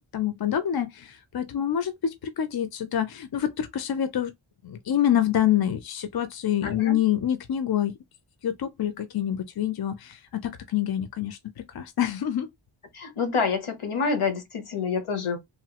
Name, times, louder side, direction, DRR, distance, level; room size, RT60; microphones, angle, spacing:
voice 1, 0.1-4.3 4.6-7.9 8.4-12.5, left 10 dB, 50° left, 0.5 m, -26 dB
voice 2, 6.6-7.0 12.9-15.4, left 5 dB, 85° left, 1.0 m, -27 dB
3.1 x 2.3 x 2.8 m
wide cardioid pair, 80°, 49 cm